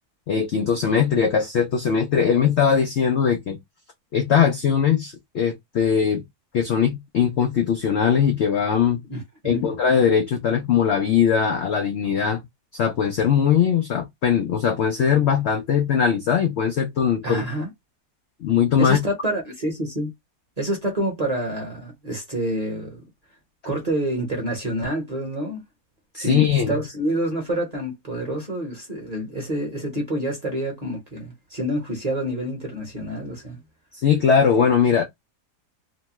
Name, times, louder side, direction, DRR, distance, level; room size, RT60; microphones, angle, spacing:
voice 1, 0.3-3.6 4.1-6.2 6.5-9.0 9.4-12.4 12.7-17.4 18.4-19.0 26.2-26.8 33.9-35.0, left 7 dB, 70° left, 0.6 m, -20 dB
voice 2, 9.1-9.7 17.2-17.7 18.8-20.1 20.6-23.0 23.6-25.6 26.1-26.4 26.7-33.6, right 1 dB, 30° right, 0.9 m, -27 dB
3.0 x 2.2 x 2.9 m
omnidirectional pair, 1.7 m